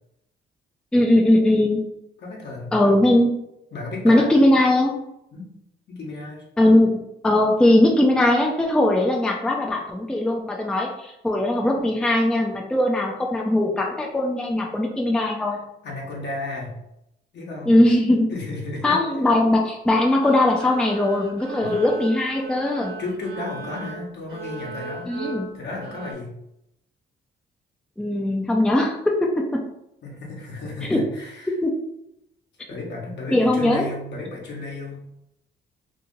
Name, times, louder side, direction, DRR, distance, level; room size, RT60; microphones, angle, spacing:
voice 1, 0.9-1.8 2.7-3.3 4.0-5.0 6.6-6.9 7.2-15.6 17.7-18.3 18.8-22.9 25.1-25.5 28.0-29.6 30.9-31.0 31.6-31.7 33.3-33.8, left 1 dB, 5° left, 0 dB, 0.4 m, -19 dB
voice 2, 2.2-2.9 3.7-4.3 5.3-5.5 5.9-6.5 15.5-16.8 17.3-17.8 18.3-19.0 21.6-21.8 23.0-25.1 25.5-26.3 30.0-31.5 32.7-35.0, left 2 dB, 60° left, -2 dB, 1.0 m, -33 dB
sound 1, 20.2-26.1, right 3 dB, 80° right, 0.6 m, -37 dB
2.8 x 2.7 x 2.6 m, 0.81 s
cardioid pair, 90°, 20 cm